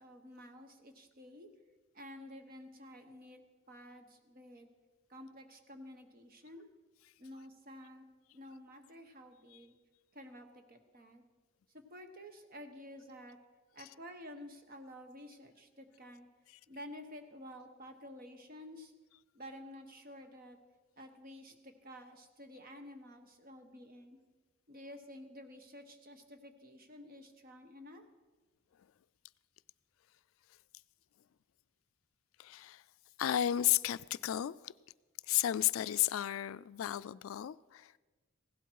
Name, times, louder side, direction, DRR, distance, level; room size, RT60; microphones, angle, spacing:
voice 1, 0.0-1.5 1.9-3.4 3.7-4.7 5.1-6.7 7.2-8.0 8.3-9.8 10.1-11.2 11.9-13.4 13.7-16.3 16.7-18.9 19.3-20.6 21.0-24.2 24.7-28.0, left 1 dB, 45° right, 1.3 m, -51 dB
voice 2, 32.4-32.8 33.2-34.7 35.3-38.0, left 12 dB, 75° left, 0.3 m, -33 dB
16.5 x 12.0 x 4.7 m
head